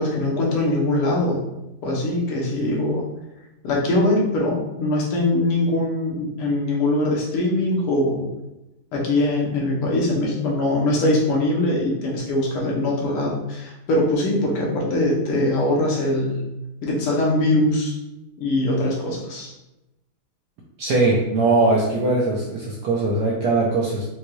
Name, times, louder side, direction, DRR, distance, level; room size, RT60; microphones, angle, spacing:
voice 1, 0.0-1.5 1.8-3.0 3.6-8.3 8.9-16.5 16.8-18.0 18.4-19.5, left 1 dB, 85° left, -3 dB, 1.9 m, -22 dB
voice 2, 20.8-24.1, right 2 dB, 75° right, -3 dB, 0.9 m, -20 dB
5.2 x 2.3 x 3.0 m, 0.95 s
omnidirectional pair, 2.4 m